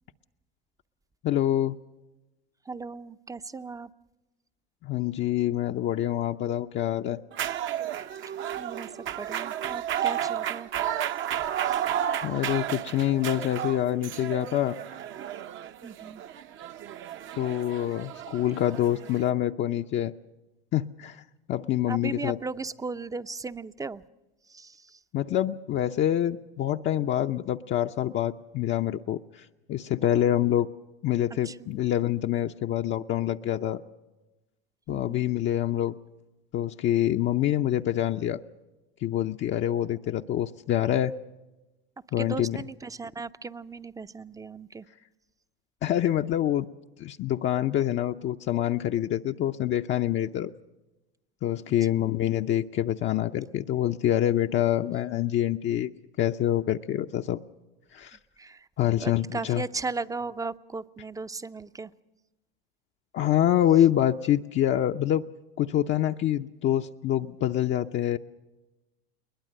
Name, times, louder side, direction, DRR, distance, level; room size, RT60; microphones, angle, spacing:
voice 1, 1.2-1.8 4.8-7.2 12.2-14.8 17.3-20.1 20.7-21.2 21.5-22.4 25.1-30.7 31.0-33.8 34.9-36.0 36.5-38.4 39.0-41.1 42.1-42.6 45.8-46.7 47.0-50.5 51.4-55.9 56.2-57.4 57.9-58.2 58.8-59.6 63.1-65.2 65.6-68.2, left 12 dB, 40° left, 4 dB, 0.7 m, -26 dB
voice 2, 2.7-3.9 8.6-8.9 9.2-10.7 11.6-11.8 15.8-16.2 21.9-24.0 24.5-25.0 31.4-31.8 34.9-35.3 42.2-44.9 52.0-52.1 58.4-58.7 59.0-61.9, right 4 dB, 10° right, 14 dB, 0.6 m, -37 dB
sound 1, 7.3-19.3, right 10 dB, 40° right, 0.8 m, -32 dB
22.0 x 20.5 x 6.5 m, 1.1 s
hypercardioid pair, 85°, 30 cm